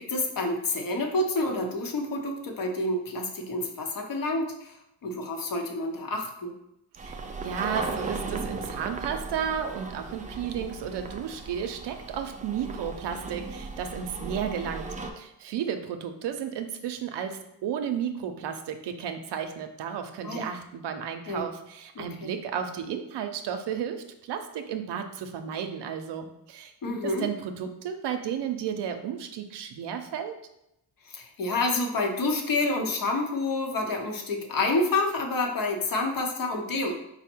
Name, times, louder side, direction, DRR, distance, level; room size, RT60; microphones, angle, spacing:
voice 1, 0.0-6.5 20.2-20.4 21.3-21.4 22.0-22.3 26.8-27.3 31.0-36.9, left 2 dB, 50° left, 2 dB, 0.8 m, -28 dB
sound 1, 7.0-15.1, right 3 dB, 20° right, 0.4 m, -37 dB
voice 2, 7.0-14.9 15.1-30.4, right 8 dB, 70° right, 7 dB, 0.6 m, -33 dB
4.1 x 2.1 x 4.4 m, 0.82 s
cardioid pair, 80°, 43 cm